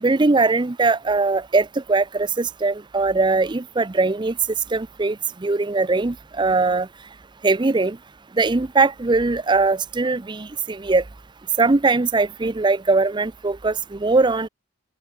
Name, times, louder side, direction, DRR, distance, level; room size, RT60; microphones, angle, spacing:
voice 1, 0.0-4.3 4.7-6.9 7.4-8.0 8.4-11.0 11.6-14.5, right 3 dB, 20° right, 0.5 m, -20 dB
open air
head